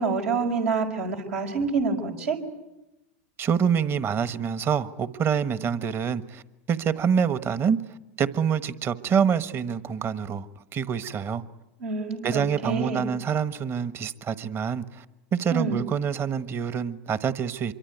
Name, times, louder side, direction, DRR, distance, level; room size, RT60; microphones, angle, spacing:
voice 1, 0.0-2.4 11.8-13.1 15.5-15.8, right 4 dB, 80° right, 3 dB, 5.2 m, -27 dB
voice 2, 3.4-6.4 6.7-7.8 8.2-10.5 10.7-11.4 12.2-15.0 15.3-17.7, right 7 dB, 35° right, 14 dB, 1.3 m, -26 dB
25.5 x 23.5 x 9.4 m, 0.94 s
hypercardioid pair, 110°, 7 cm